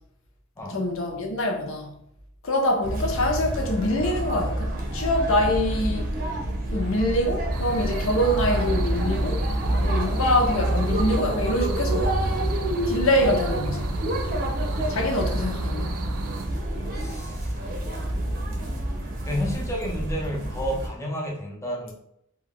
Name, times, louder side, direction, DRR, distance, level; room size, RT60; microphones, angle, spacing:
voice 1, 0.7-1.9 2.4-6.1 6.7-9.4 9.8-12.1 12.9-13.8 14.9-15.9, left 1 dB, 65° left, 0.6 m, -25 dB
sound 1, 2.8-20.9, right 1 dB, 45° right, 0.6 m, -27 dB
sound 2, 7.5-16.5, right 4 dB, 85° right, 0.3 m, -37 dB
voice 2, 16.9-17.6 19.2-21.9, equal, 15° left, 0.5 m, -31 dB
2.3 x 2.3 x 3.4 m
head